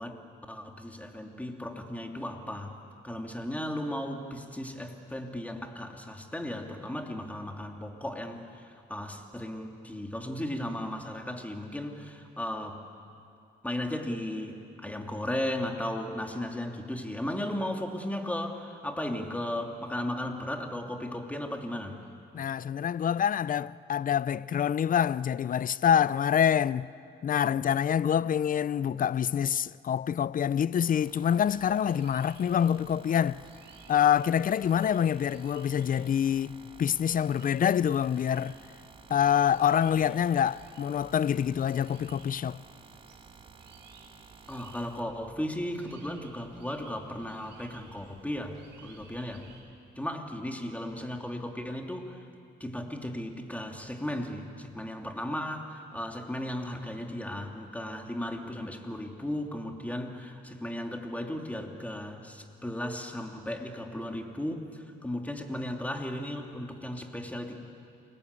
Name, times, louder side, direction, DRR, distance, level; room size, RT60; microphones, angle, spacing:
voice 1, 0.0-2.8 3.0-12.8 13.6-22.0 44.5-49.4 50.0-52.3 52.6-67.6, left 1 dB, 5° left, 2.9 m, -36 dB
voice 2, 22.3-26.9 27.2-33.4 33.9-38.5 39.1-42.6, left 9 dB, 45° left, 0.6 m, -26 dB
sound 1, 30.8-45.0, right 4 dB, 25° right, 1.8 m, -54 dB
sound 2, 31.3-49.6, right 5 dB, 60° right, 4.3 m, -56 dB
29.0 x 21.0 x 8.4 m
cardioid pair, 90°, 20 cm